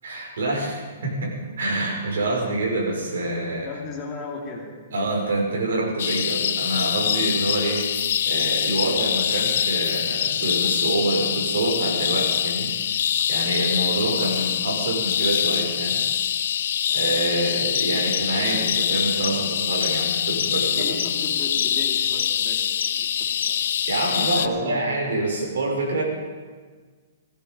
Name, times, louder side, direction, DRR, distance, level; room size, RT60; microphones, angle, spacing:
voice 1, 0.0-3.7 4.9-7.8 8.3-12.7 13.3-16.0 16.9-21.1 23.9-26.0, right 2 dB, 75° right, -1 dB, 6.0 m, -26 dB
voice 2, 3.6-4.7 20.5-23.1 23.5-23.7 24.3-24.8, left 3 dB, 15° left, -2 dB, 2.5 m, -36 dB
sound 1, 6.0-24.5, left 9 dB, 55° left, 0.7 m, -24 dB
16.5 x 15.5 x 5.4 m, 1.5 s
hypercardioid pair, 175°, 0 cm